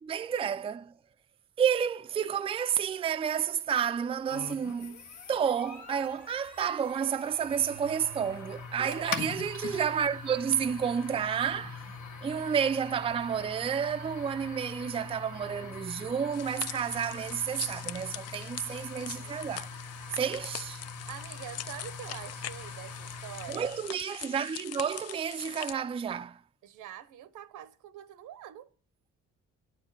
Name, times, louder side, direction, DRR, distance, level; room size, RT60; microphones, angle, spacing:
voice 1, 0.0-0.9 1.6-5.0 5.3-11.8 12.2-19.7 20.1-20.8 23.5-26.4, right 8 dB, 20° right, 0.4 m, -30 dB
sound 1, 4.3-23.9, left 4 dB, 75° left, 1.6 m, -43 dB
voice 2, 8.8-9.2 19.1-19.7 21.1-23.7 26.6-28.7, right 11 dB, 85° right, 0.9 m, -45 dB
sound 2, 16.3-25.7, left 11 dB, 55° left, 0.4 m, -43 dB
9.9 x 4.4 x 7.1 m
cardioid pair, 90°, 30 cm